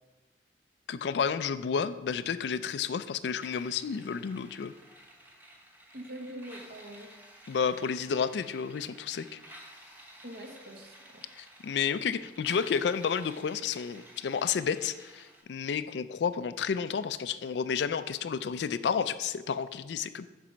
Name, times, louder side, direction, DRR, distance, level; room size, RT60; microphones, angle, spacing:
voice 1, 0.9-4.7 7.5-9.4 11.4-20.3, left 6 dB, 65° left, 14 dB, 0.4 m, -31 dB
sound 1, 3.4-15.4, right 1 dB, 10° right, 1.0 m, -53 dB
voice 2, 5.9-7.1 10.2-11.2, right 1 dB, 60° right, 3 dB, 1.2 m, -44 dB
7.4 x 5.3 x 5.1 m, 1.2 s
head